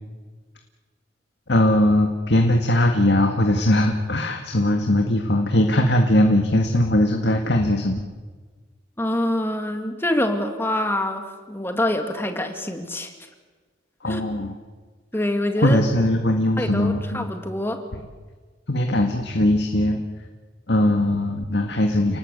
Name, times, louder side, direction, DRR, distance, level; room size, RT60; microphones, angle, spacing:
voice 1, 1.5-8.0 14.0-14.6 15.6-17.3 18.7-20.0 20.7-22.2, left 1 dB, 60° left, 3 dB, 2.0 m, -20 dB
voice 2, 9.0-13.1 14.1-14.2 15.1-15.8 16.6-17.8, left 1 dB, 10° left, 5 dB, 2.1 m, -25 dB
29.5 x 19.5 x 8.3 m, 1.4 s
head